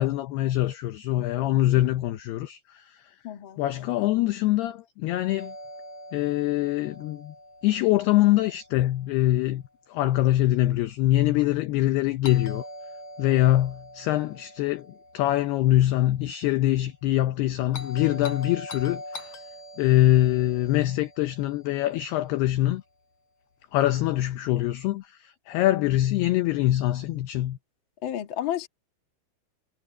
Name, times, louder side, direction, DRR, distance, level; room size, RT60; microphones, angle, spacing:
voice 1, 0.0-3.2 3.6-5.5 6.1-7.3 7.6-9.6 9.9-12.7 13.2-14.9 15.1-19.3 19.8-22.8 23.7-27.6, left 15 dB, 85° left, 2.3 m, -24 dB
voice 2, 3.2-3.6 28.0-28.7, left 11 dB, 55° left, 1.3 m, -31 dB
Doorbell, 5.4-9.4 12.2-16.5 17.7-22.1, left 1 dB, 35° left, 4.0 m, -43 dB
omnidirectional pair, 5.7 m